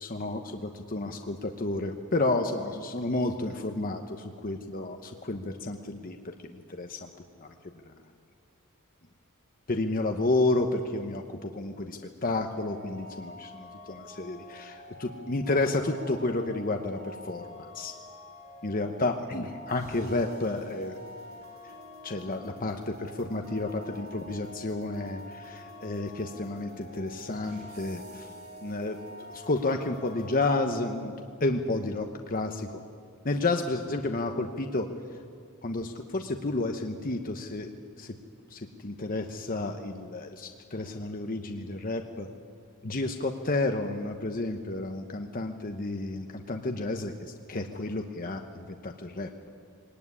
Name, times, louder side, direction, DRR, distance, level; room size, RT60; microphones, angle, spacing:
voice 1, 0.0-6.2 6.4-7.1 7.4-7.5 9.7-17.0 17.3-17.9 18.6-21.0 22.0-28.3 28.6-29.0 29.3-31.1 31.4-32.8 33.2-34.9 35.6-37.7 38.0-38.1 38.5-42.3 42.8-47.1 47.5-49.3, left 2 dB, 40° left, 5 dB, 1.0 m, -31 dB
sound 1, 12.5-30.4, left 1 dB, 75° right, 7.9 m, -47 dB
22.5 x 18.5 x 9.7 m, 2.3 s
head